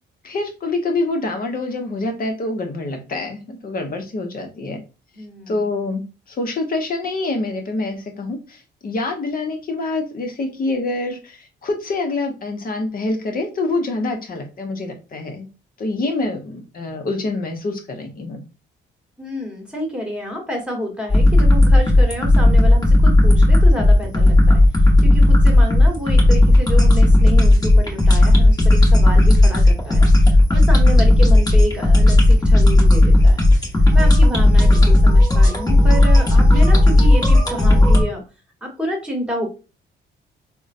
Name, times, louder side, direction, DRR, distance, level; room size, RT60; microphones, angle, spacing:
voice 1, 0.2-4.8 5.5-6.0 6.3-15.5 15.8-18.4, left 2 dB, 45° left, 4 dB, 0.9 m, -26 dB
voice 2, 5.1-5.6 19.2-24.6 25.0-30.1 30.5-33.4 33.9-38.2 38.6-39.5, equal, 5° right, 1 dB, 1.3 m, -28 dB
sound 1, 21.1-38.0, left 1 dB, 20° left, 1.1 m, -12 dB
3.6 x 2.2 x 2.6 m, 0.32 s
cardioid pair, 90°, 20 cm